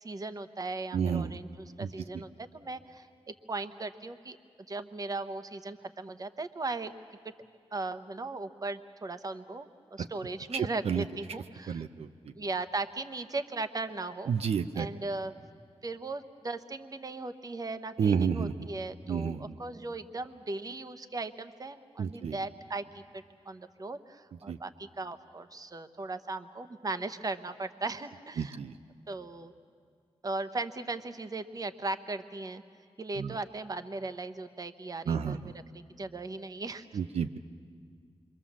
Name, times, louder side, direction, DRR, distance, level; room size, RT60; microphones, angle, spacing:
voice 1, 0.0-1.5 1.8-4.4 4.7-6.9 7.7-11.8 12.4-14.3 14.8-15.3 15.8-28.6 29.1-29.5 30.2-32.6 33.0-36.9, right 3 dB, 35° right, 10 dB, 0.9 m, -38 dB
voice 2, 0.9-1.4 1.8-1.9 10.0-10.1 10.5-11.1 11.7-12.3 14.3-14.9 18.0-18.7 19.1-19.6 22.0-22.4 24.5-24.6 28.4-28.7 33.2-33.4 35.1-35.5 36.9-37.4, right 7 dB, 85° right, 8 dB, 0.6 m, -30 dB
26.5 x 23.5 x 7.3 m, 2.1 s
wide cardioid pair, 95°, 10 cm